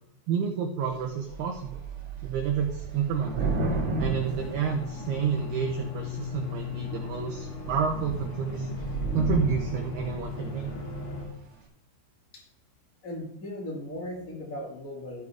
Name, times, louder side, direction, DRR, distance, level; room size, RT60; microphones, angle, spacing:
voice 1, 0.3-1.9 2.2-3.5 4.0-8.8 9.1-10.7, right 7 dB, 80° right, 2 dB, 2.3 m, -30 dB
Thunder / Rain, 0.9-1.0 1.3-5.4 6.1-6.6 7.0-7.2 7.4-11.2, right 2 dB, 45° right, 1.9 m, -33 dB
sound 1, 4.2-11.3, left 5 dB, 85° left, 4.9 m, -37 dB
voice 2, 13.0-15.3, left 1 dB, 45° left, -1 dB, 1.0 m, -37 dB
15.0 x 6.6 x 3.5 m, 0.77 s
omnidirectional pair, 5.8 m